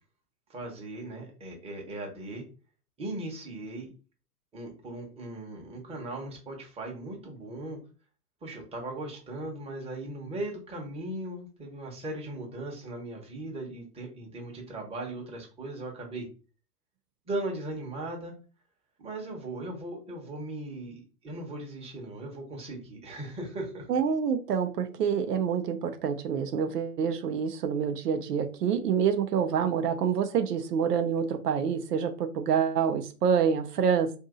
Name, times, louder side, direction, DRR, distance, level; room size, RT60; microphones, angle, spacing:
voice 1, 0.5-2.4 3.0-3.9 4.5-7.8 8.4-16.3 17.3-18.3 19.0-23.9, right 2 dB, 15° right, 0 dB, 0.9 m, -38 dB
voice 2, 23.9-34.2, right 7 dB, 80° right, 7 dB, 0.6 m, -27 dB
2.7 x 2.6 x 3.7 m, 0.35 s
hypercardioid pair, 110°, 47 cm